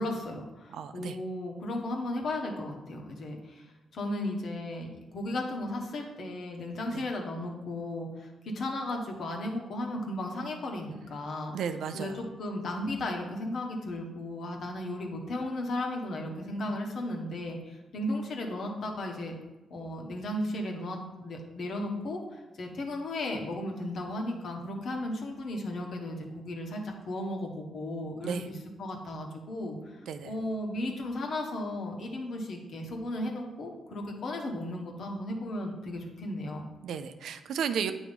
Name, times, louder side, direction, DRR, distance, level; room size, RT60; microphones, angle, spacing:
voice 1, 0.0-11.5 11.9-19.3 19.7-30.0 30.2-36.7, left 1 dB, 65° left, 1 dB, 1.2 m, -35 dB
voice 2, 0.7-1.2 6.9-7.0 11.5-12.2 28.2-28.5 30.1-30.3 36.8-37.9, right 7 dB, 75° right, 10 dB, 0.4 m, -33 dB
8.1 x 3.0 x 5.3 m, 1.1 s
supercardioid pair, 55°, 0 cm